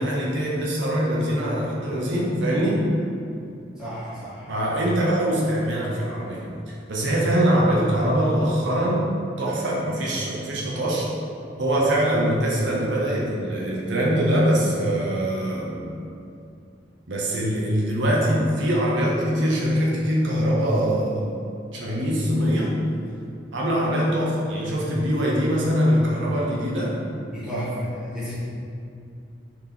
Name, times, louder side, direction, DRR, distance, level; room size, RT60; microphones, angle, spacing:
voice 1, 0.0-2.8 4.5-9.0 9.4-11.1 11.6-15.9 17.1-21.2 21.7-22.7 23.5-27.0, equal, 80° right, -4 dB, 0.7 m, -23 dB
voice 2, 3.8-4.5 18.1-18.3 27.3-28.3, equal, 5° right, -12 dB, 1.2 m, -32 dB
3.9 x 2.9 x 3.4 m, 2.6 s
head